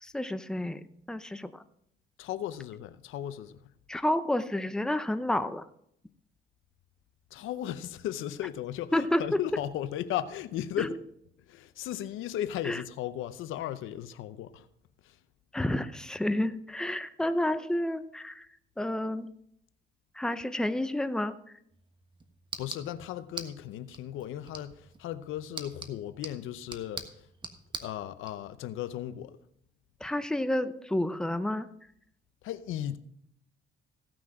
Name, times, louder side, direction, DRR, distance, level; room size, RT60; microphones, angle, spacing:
voice 1, 0.0-1.6 3.9-5.7 8.9-9.4 10.8-10.9 12.6-12.8 15.5-18.5 18.8-19.3 20.1-21.4 30.0-31.7, left 1 dB, 5° left, 0.7 m, -30 dB
voice 2, 2.2-3.6 7.3-11.0 11.5-14.7 15.0-15.2 22.6-27.3 27.8-29.4 32.4-33.0, left 11 dB, 85° left, 0.7 m, -36 dB
sound 1, 21.7-28.3, right 3 dB, 25° right, 1.3 m, -45 dB
16.0 x 6.1 x 4.9 m
cardioid pair, 90°, 20 cm